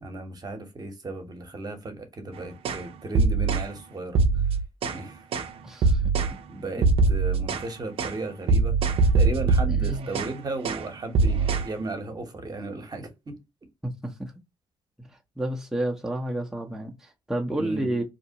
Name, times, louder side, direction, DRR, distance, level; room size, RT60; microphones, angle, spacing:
voice 1, 0.0-4.2 4.8-5.2 6.5-8.7 9.1-13.4 17.6-17.9, right 2 dB, 40° right, 0.9 m, -35 dB
sound 1, 2.6-2.8 3.1-3.7 4.1-5.0 5.3-5.5 5.8-6.4 6.8-7.7 8.0-8.2 8.5-10.3 10.6-10.9 11.1-11.7, right 4 dB, 65° right, 0.5 m, -22 dB
voice 2, 5.6-6.4 9.7-10.2 13.8-14.3 15.4-18.0, right 1 dB, 5° right, 0.7 m, -31 dB
2.7 x 2.0 x 2.7 m
supercardioid pair, 60°, 10 cm